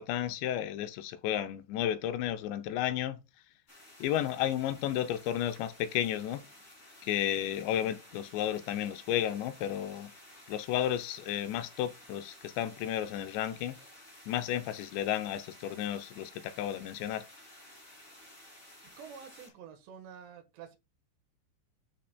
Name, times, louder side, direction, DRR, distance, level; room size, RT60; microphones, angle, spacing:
voice 1, 0.0-3.2 4.0-6.4 7.0-10.1 10.5-13.8 14.3-17.3, left 11 dB, 80° left, 2.8 m, -32 dB
sound 1, 3.7-19.5, left 1 dB, 25° left, 1.9 m, -54 dB
voice 2, 19.0-20.8, right 7 dB, 75° right, 3.4 m, -48 dB
13.0 x 5.9 x 2.2 m
omnidirectional pair, 5.2 m